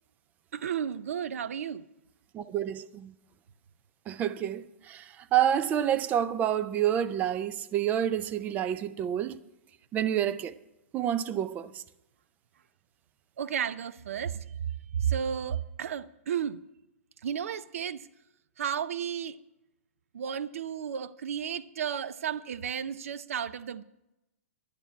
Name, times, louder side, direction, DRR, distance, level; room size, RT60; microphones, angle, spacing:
voice 1, 0.5-1.8 13.4-14.4 14.9-16.6 17.2-18.1 18.6-19.4 20.1-23.8, right 8 dB, 75° right, 0.5 m, -33 dB
voice 2, 2.3-3.1 4.1-9.4 9.9-10.5 10.9-11.8, right 10 dB, 20° right, 0.5 m, -28 dB
11.0 x 7.2 x 9.1 m
hypercardioid pair, 145°, 8 cm